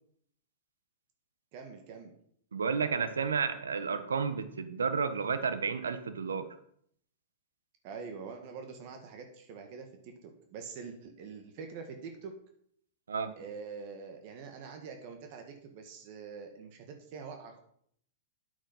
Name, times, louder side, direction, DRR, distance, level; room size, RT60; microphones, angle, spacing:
voice 1, 1.5-2.1 7.8-12.3 13.4-17.6, right 5 dB, 50° right, 4 dB, 2.1 m, -45 dB
voice 2, 2.5-6.4 13.1-13.3, right 5 dB, 85° right, 10 dB, 1.4 m, -31 dB
8.9 x 8.8 x 5.6 m, 0.66 s
hypercardioid pair, 115°, 0 cm